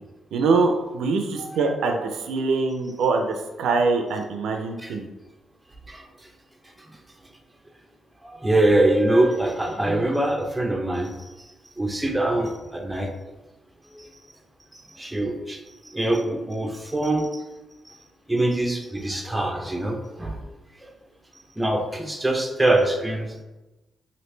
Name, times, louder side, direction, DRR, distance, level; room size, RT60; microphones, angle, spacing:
voice 1, 0.3-3.2 3.6-5.1, right 4 dB, 80° right, 4 dB, 0.4 m, -23 dB
voice 2, 8.2-11.1 11.8-13.1 13.9-14.1 15.0-15.6 15.9-17.4 18.3-20.4 20.8-20.9 21.6-23.4, right 1 dB, 10° right, 3 dB, 0.5 m, -23 dB
3.1 x 2.5 x 3.1 m, 1.1 s
cardioid pair, 75°, 0 cm